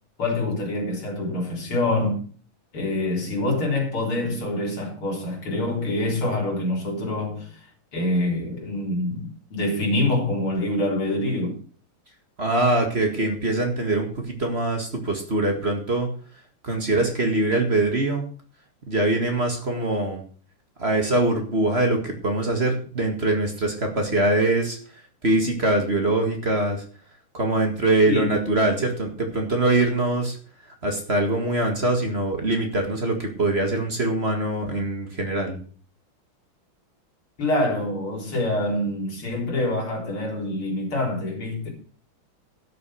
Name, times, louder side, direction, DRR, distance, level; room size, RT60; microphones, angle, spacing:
voice 1, 0.2-2.3 2.7-7.5 7.9-11.6 28.1-28.3 37.4-41.7, left 1 dB, 90° left, 4.5 m, -25 dB
voice 2, 12.4-16.1 16.6-18.3 18.9-20.2 20.8-24.8 25.2-26.8 27.3-30.4 30.8-35.6, right 2 dB, 30° right, 2.0 m, -23 dB
11.5 x 6.8 x 6.3 m
omnidirectional pair, 2.3 m